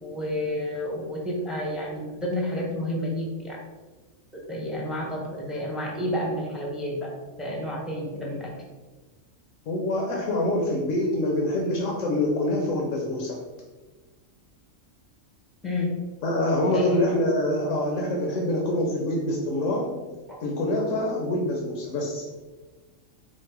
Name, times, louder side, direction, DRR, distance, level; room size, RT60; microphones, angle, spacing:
voice 1, 0.0-3.6 4.5-7.1 7.4-8.5 15.6-15.9 16.7-17.0, left 1 dB, ahead, -2 dB, 0.6 m, -30 dB
voice 2, 9.7-13.4 16.2-19.9 20.4-22.2, left 1 dB, 75° left, -1 dB, 1.1 m, -25 dB
4.6 x 2.1 x 4.5 m, 1.3 s
omnidirectional pair, 1.4 m